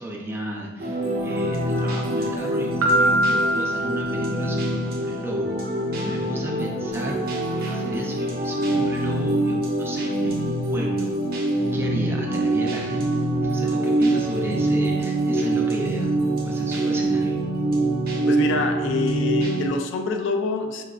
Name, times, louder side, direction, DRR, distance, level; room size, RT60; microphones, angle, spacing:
voice 1, 0.0-5.5 6.0-7.3 7.5-11.1 11.7-16.1 16.4-17.4, right 1 dB, 10° right, -2 dB, 0.4 m, -34 dB
sound 1, 0.8-19.7, right 1 dB, 50° right, 0.7 m, -24 dB
Piano, 2.8-4.7, right 1 dB, 90° right, 0.6 m, -23 dB
voice 2, 18.3-20.8, left 4 dB, 65° left, 5 dB, 0.3 m, -26 dB
4.6 x 2.2 x 2.3 m, 1.3 s
head